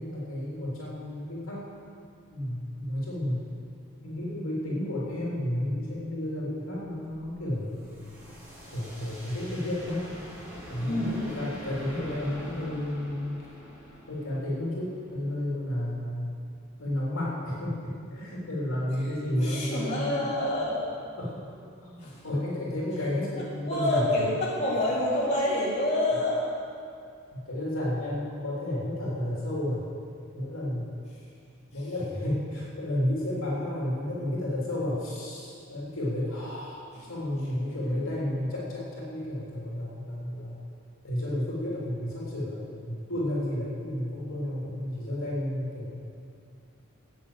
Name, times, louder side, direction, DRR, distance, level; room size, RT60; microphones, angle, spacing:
voice 1, 0.0-1.7 2.3-3.4 4.0-7.9 8.7-10.0 10.7-13.3 14.1-16.3 16.8-20.3 21.2-21.5 21.8-24.2 27.3-29.8 30.3-30.9 31.7-36.8 37.1-40.6 41.0-45.9, left 1 dB, 65° left, -5 dB, 3.5 m, -32 dB
sound 1, 6.6-15.4, equal, 5° right, 4.2 m, -45 dB
voice 2, 10.8-11.2 19.4-20.9 22.0-22.2 23.4-26.5 31.8-31.9 36.9-37.0, left 1 dB, 30° left, -8 dB, 3.7 m, -27 dB
14.5 x 9.0 x 7.5 m, 2.4 s
head